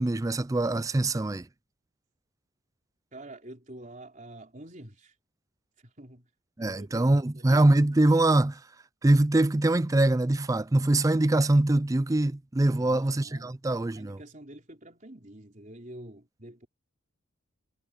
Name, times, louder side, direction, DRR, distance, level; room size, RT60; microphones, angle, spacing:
voice 1, 0.0-1.5 6.6-8.6 9.0-14.2, right 2 dB, 15° right, 0.4 m, -23 dB
voice 2, 3.1-5.1 5.8-6.3 6.6-7.7 12.7-13.6 13.9-16.7, right 1 dB, 35° right, 4.1 m, -47 dB
head